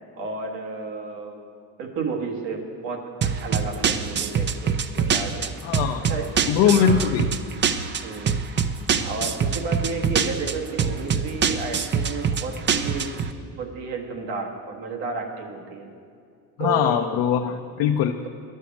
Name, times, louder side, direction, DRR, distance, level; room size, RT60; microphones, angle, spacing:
voice 1, 0.2-1.4 1.8-3.0 3.3-5.5 6.0-7.1 8.0-8.4 9.0-13.1 13.6-15.9 16.6-17.0, right 4 dB, 70° right, 1 dB, 1.7 m, -32 dB
sound 1, 3.2-13.3, right 6 dB, 25° right, 0.4 m, -24 dB
voice 2, 5.6-6.0 6.5-7.3 16.6-18.1, left 9 dB, 65° left, 3 dB, 0.7 m, -21 dB
10.5 x 6.4 x 7.1 m, 2.3 s
supercardioid pair, 100°, 45 cm